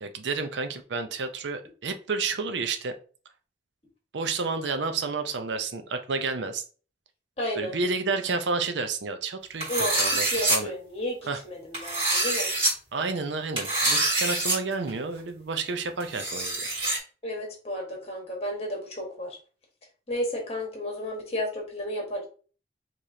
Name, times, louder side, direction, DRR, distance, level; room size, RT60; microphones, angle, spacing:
voice 1, 0.0-2.9 4.1-6.6 7.5-10.7 11.3-11.4 12.9-16.7, right 4 dB, 85° right, 8 dB, 0.6 m, -30 dB
voice 2, 7.4-7.8 9.7-12.5 17.2-19.3 20.1-22.3, left 1 dB, 35° left, 0 dB, 1.4 m, -32 dB
sound 1, 9.6-10.6 11.7-12.7 13.6-14.6 14.9-15.0 16.0-17.0, right 2 dB, 30° right, 2.1 m, -25 dB
4.8 x 3.0 x 2.7 m, 0.38 s
head